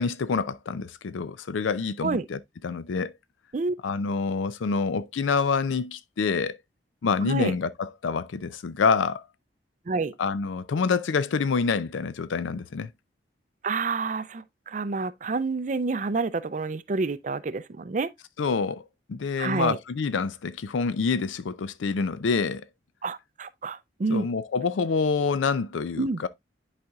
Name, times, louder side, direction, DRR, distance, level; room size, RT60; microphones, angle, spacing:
voice 1, 0.0-3.1 3.8-6.6 7.0-9.2 10.2-12.9 18.4-18.8 19.1-22.6 24.1-26.3, left 5 dB, 85° left, 0.4 m, -27 dB
voice 2, 7.2-7.5 9.9-10.1 13.6-18.1 19.4-19.8 23.0-24.3 26.0-26.2, right 4 dB, 40° right, 0.4 m, -28 dB
10.5 x 4.2 x 2.3 m
head